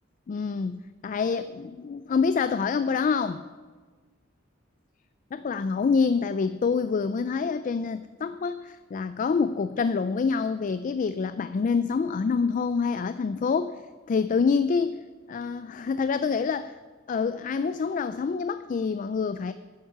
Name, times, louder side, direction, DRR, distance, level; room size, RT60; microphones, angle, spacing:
voice 1, 0.3-3.4 5.3-13.8 14.1-15.0 15.3-16.7 17.1-19.5, left 5 dB, 40° left, 13 dB, 0.3 m, -26 dB
10.0 x 9.4 x 5.9 m, 1.4 s
head